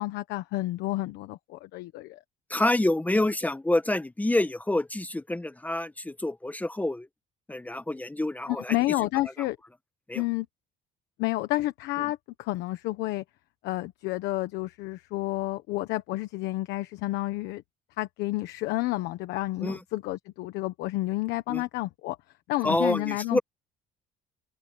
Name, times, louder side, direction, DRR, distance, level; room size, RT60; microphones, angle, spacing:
voice 1, 0.0-2.2 8.5-9.6 10.1-10.5 11.2-13.2 13.6-17.6 18.0-22.2 22.5-23.4, left 18 dB, 90° left, 1.2 m, -30 dB
voice 2, 2.5-7.1 7.5-8.8 10.1-10.2 19.6-19.8 21.5-21.6 22.6-23.4, left 1 dB, 10° left, 1.3 m, -27 dB
open air
cardioid pair, 110°, 17 cm